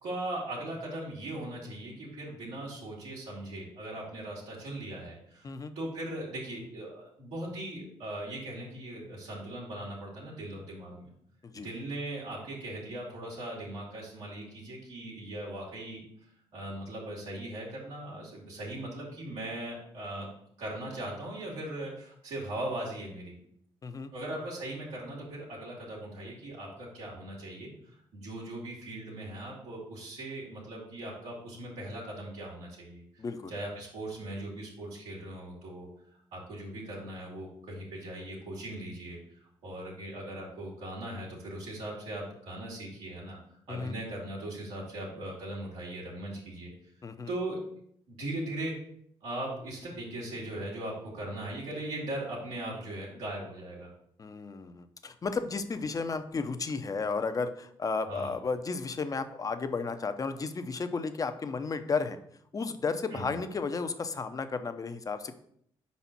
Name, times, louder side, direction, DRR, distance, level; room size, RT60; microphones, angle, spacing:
voice 1, 0.0-11.1 11.5-16.0 16.5-20.3 20.6-23.3 24.1-33.2 33.5-35.9 36.3-39.2 39.6-46.7 47.3-47.6 48.1-48.7 49.2-53.9 58.1-58.3 63.1-63.4, right 1 dB, 85° right, -5 dB, 2.1 m, -39 dB
voice 2, 33.2-33.5 43.7-43.9 47.0-47.3 54.2-62.2 62.5-65.3, left 4 dB, 35° left, 9 dB, 0.6 m, -33 dB
5.0 x 4.2 x 5.9 m, 0.68 s
cardioid pair, 80°, 11 cm